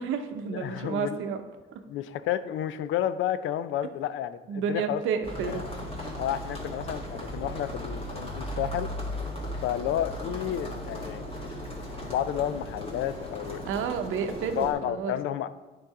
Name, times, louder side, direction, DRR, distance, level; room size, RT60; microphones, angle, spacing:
voice 1, 0.0-1.4 1.7-1.8 4.5-5.6 13.7-15.2, right 6 dB, 85° right, 7 dB, 0.7 m, -30 dB
voice 2, 0.6-1.2 1.9-5.0 5.4-5.6 6.2-8.9 9.6-11.3 12.1-13.7 14.6-15.5, left 11 dB, 80° left, 14 dB, 0.4 m, -31 dB
sound 1, 5.2-14.7, equal, 30° left, 1.9 m, -37 dB
9.1 x 3.9 x 4.7 m, 1.2 s
cardioid pair, 90°, 20 cm